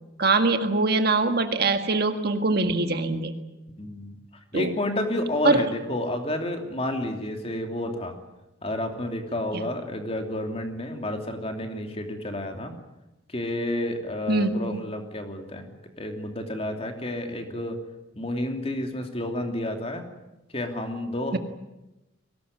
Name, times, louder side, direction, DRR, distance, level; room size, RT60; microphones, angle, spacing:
voice 1, 0.2-3.3 4.5-4.7 5.4-5.6 9.5-9.6 14.3-14.8 21.3-21.4, right 3 dB, 50° right, 7 dB, 1.8 m, -23 dB
voice 2, 3.8-4.2 4.5-8.1 8.6-12.7 13.3-17.8 18.1-20.0 20.5-21.4, left 1 dB, 30° left, 4 dB, 2.9 m, -30 dB
22.5 x 19.0 x 9.7 m, 0.98 s
head